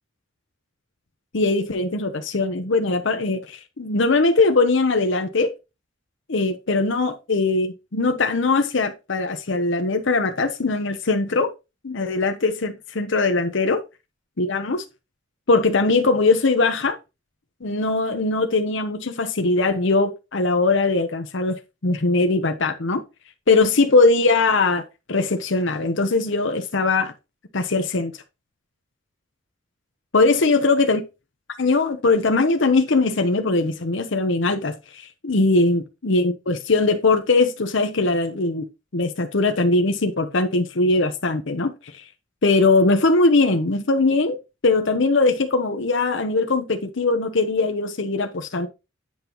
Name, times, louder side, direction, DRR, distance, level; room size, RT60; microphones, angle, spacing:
voice 1, 1.3-5.5 6.3-11.5 11.8-13.8 14.4-14.8 15.5-17.0 17.6-21.6 21.8-23.0 23.5-24.8 25.1-27.1 27.5-28.1 30.1-31.0 31.6-38.7 38.9-42.0 42.4-44.4 44.6-48.7, left 3 dB, 60° left, 0.8 m, -20 dB
8.9 x 5.3 x 3.0 m
head